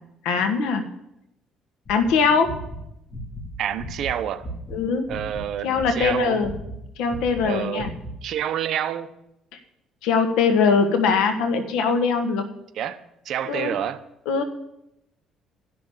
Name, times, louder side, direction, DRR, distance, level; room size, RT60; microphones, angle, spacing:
voice 1, 0.2-0.8 1.9-2.5 4.7-5.1 5.6-6.5 7.0-7.9 10.0-12.4 13.5-13.8 14.3-14.4, left 5 dB, 85° left, 7 dB, 1.4 m, -21 dB
sound 1, 1.8-4.8 5.0-7.5 7.8-8.2, equal, 30° left, 3.0 m, -36 dB
voice 2, 3.6-4.5 5.1-5.7 6.0-6.4 7.4-7.9 8.2-9.1 12.7-13.0 13.2-14.0, right 10 dB, 60° right, 11 dB, 0.8 m, -28 dB
11.5 x 6.1 x 7.2 m, 0.83 s
cardioid pair, 115°, 0 cm